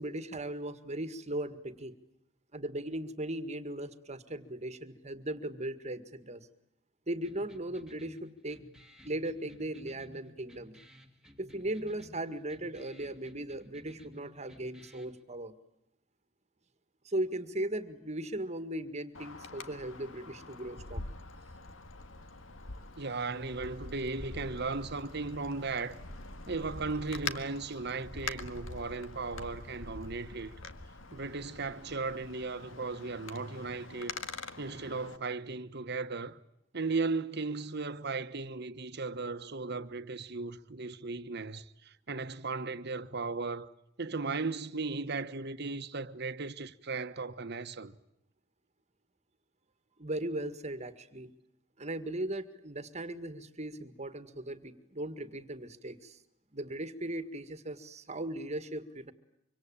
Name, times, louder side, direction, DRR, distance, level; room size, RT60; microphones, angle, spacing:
voice 1, 0.0-2.0 2.5-6.5 7.1-8.7 9.0-10.8 11.4-15.5 17.0-21.0 50.0-51.3 51.8-56.2 56.5-59.1, right 1 dB, 35° right, 1.9 m, -38 dB
sound 1, 7.2-15.2, equal, 5° right, 2.6 m, -56 dB
Wind, 19.1-35.2, left 3 dB, 85° left, 1.9 m, -44 dB
voice 2, 23.0-26.0 26.5-30.5 31.1-34.1 34.6-36.4 36.7-43.7 44.0-47.9, right 3 dB, 55° right, 1.3 m, -36 dB
25.5 x 25.5 x 8.8 m
head